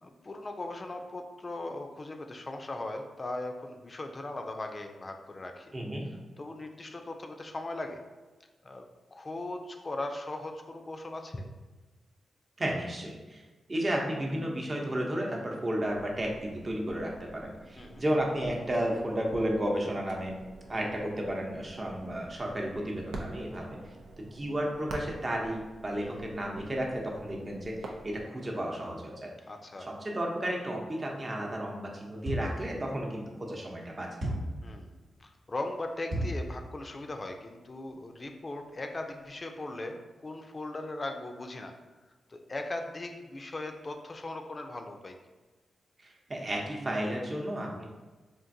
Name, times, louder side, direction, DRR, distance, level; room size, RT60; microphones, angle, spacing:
voice 1, 0.0-5.7 6.4-8.0 8.6-8.8 9.1-11.5 17.8-18.0 20.7-20.9 23.8-23.9 26.0-26.2 29.5-29.9 34.6-41.8 42.3-45.2, left 2 dB, 40° left, 5 dB, 0.4 m, -39 dB
voice 2, 5.7-6.0 12.6-13.4 13.7-20.3 20.7-23.7 24.2-29.3 29.8-34.2 46.0-47.8, right 1 dB, 40° right, -1 dB, 0.8 m, -33 dB
sound 1, 15.8-28.3, right 2 dB, 85° right, 0.4 m, -47 dB
sound 2, 32.3-32.7 34.2-34.6 36.1-36.5, right 1 dB, 70° right, 0.9 m, -32 dB
3.7 x 2.5 x 2.6 m, 1.2 s
supercardioid pair, 50°, 0 cm